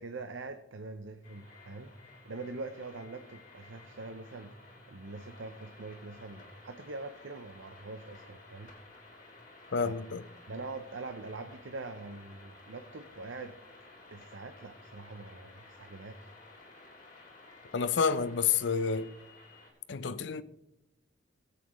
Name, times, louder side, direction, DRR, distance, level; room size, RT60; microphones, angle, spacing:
voice 1, 0.0-8.7 9.8-9.9 10.5-13.6 14.1-16.3, right 3 dB, 80° right, 0.7 m, -44 dB
sound 1, 1.2-19.7, left 2 dB, 40° left, 3.1 m, -54 dB
voice 2, 9.7-10.3 17.7-19.1 19.9-20.4, left 6 dB, 65° left, 0.6 m, -29 dB
19.0 x 8.4 x 3.1 m
head